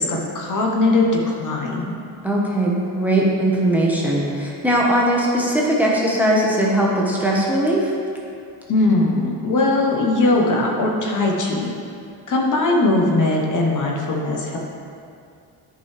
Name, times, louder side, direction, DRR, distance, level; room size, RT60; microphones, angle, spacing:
voice 1, 0.0-2.0 8.7-11.7 12.3-14.6, left 2 dB, 45° left, -1 dB, 1.1 m, -20 dB
voice 2, 2.2-7.9, right 1 dB, 5° right, -4 dB, 1.1 m, -19 dB
9.6 x 5.3 x 3.3 m, 2.4 s
cardioid pair, 110°, 41 cm